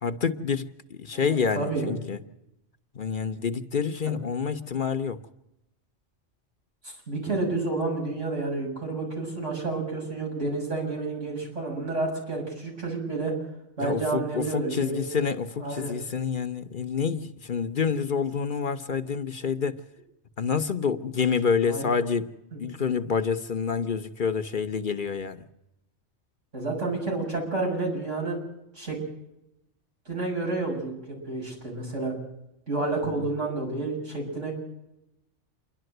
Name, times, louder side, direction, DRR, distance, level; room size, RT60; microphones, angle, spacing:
voice 1, 0.0-2.2 2.9-5.2 13.8-19.8 20.4-22.3 22.6-25.5 33.2-33.3, left 6 dB, 50° left, 0.9 m, -28 dB
voice 2, 1.5-2.0 4.1-4.2 6.8-13.3 13.8-15.0 15.6-15.9 21.7-21.9 22.5-22.6 26.5-28.4 28.7-29.0 30.1-32.1 32.7-34.5, right 3 dB, 90° right, 7.7 m, -30 dB
28.5 x 11.5 x 7.9 m
omnidirectional pair, 1.2 m